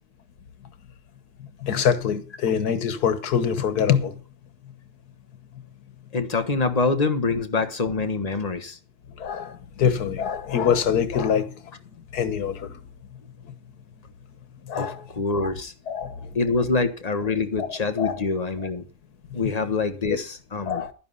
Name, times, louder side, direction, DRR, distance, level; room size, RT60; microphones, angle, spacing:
voice 1, 1.6-4.2 9.2-11.5 12.1-12.8 14.6-15.1 15.9-16.4 17.6-17.7 18.0-18.2 19.3-19.4 20.1-20.2 20.7-20.9, left 7 dB, 85° left, 1.7 m, -24 dB
voice 2, 6.1-8.8 14.7-15.7 16.3-18.8 19.3-20.8, left 4 dB, 30° left, 1.3 m, -25 dB
12.0 x 10.0 x 5.5 m
omnidirectional pair, 1.6 m